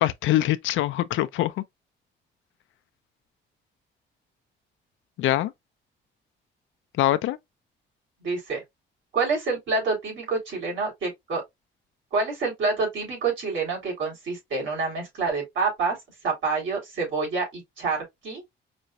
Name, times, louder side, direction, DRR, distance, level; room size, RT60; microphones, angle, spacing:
voice 1, 0.0-1.6 5.2-5.5 7.0-7.4, left 14 dB, 80° left, 0.4 m, -23 dB
voice 2, 8.2-8.6 9.1-11.4 12.1-16.0 16.2-18.0 18.2-18.4, right 4 dB, 75° right, 3.0 m, -27 dB
5.0 x 2.2 x 2.7 m
cardioid pair, 90°, 20 cm